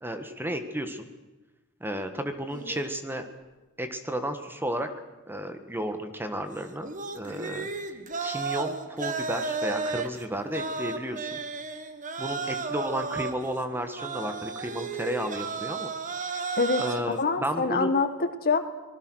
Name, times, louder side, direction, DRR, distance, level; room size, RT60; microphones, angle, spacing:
voice 1, 0.0-1.1 1.8-3.2 3.8-4.9 5.3-8.0 8.2-11.4 12.2-15.9 16.8-17.9, equal, 10° right, 8 dB, 1.6 m, -33 dB
sound 1, 2.5-2.8 6.8-17.2, right 4 dB, 35° right, 1.6 m, -34 dB
voice 2, 16.6-18.6, left 4 dB, 45° left, 9 dB, 1.7 m, -26 dB
25.5 x 20.5 x 6.4 m, 1.1 s
head